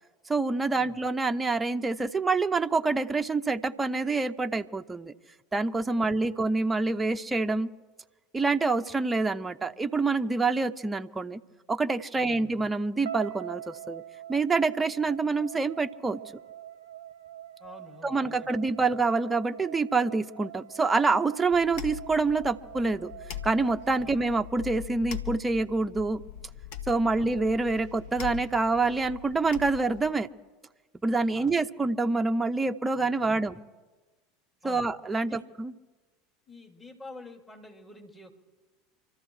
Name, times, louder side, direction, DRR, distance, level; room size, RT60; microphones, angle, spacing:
voice 1, 0.3-5.1 5.5-7.7 8.3-11.4 11.7-14.0 14.3-16.2 18.0-23.1 23.4-26.2 26.9-30.3 31.0-33.6 34.6-35.7, right 3 dB, 15° right, 7 dB, 0.7 m, -26 dB
voice 2, 12.1-12.6 17.6-18.7 24.0-24.1 27.1-27.3 31.3-31.5 33.0-33.4 34.6-34.9 35.2-35.4 36.5-38.3, left 2 dB, 20° left, -1 dB, 3.4 m, -48 dB
sound 1, 13.0-25.2, right 11 dB, 70° right, 0.6 m, -44 dB
sound 2, 21.5-30.1, left 10 dB, 60° left, 1.6 m, -42 dB
26.5 x 14.0 x 3.2 m, 1.2 s
figure-of-eight pair, 75°, 0 cm